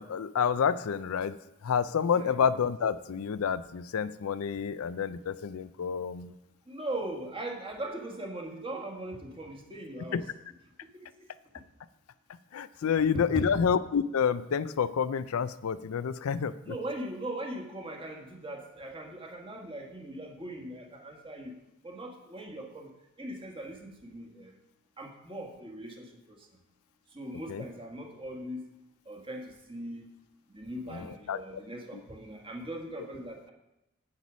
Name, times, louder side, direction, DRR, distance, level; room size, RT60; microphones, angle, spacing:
voice 1, 0.0-6.4 10.1-10.2 12.5-16.8 27.5-27.6 30.9-31.6 31.9-32.0, left 7 dB, 75° left, 14 dB, 0.4 m, -29 dB
voice 2, 6.7-10.2 10.9-11.3 13.3-13.4 16.6-21.5 21.8-22.9 23.2-24.6 25.0-26.5 27.1-28.6 29.0-30.1 30.5-33.5, right 1 dB, 25° right, 1 dB, 1.6 m, -40 dB
8.6 x 8.1 x 6.2 m, 0.91 s
head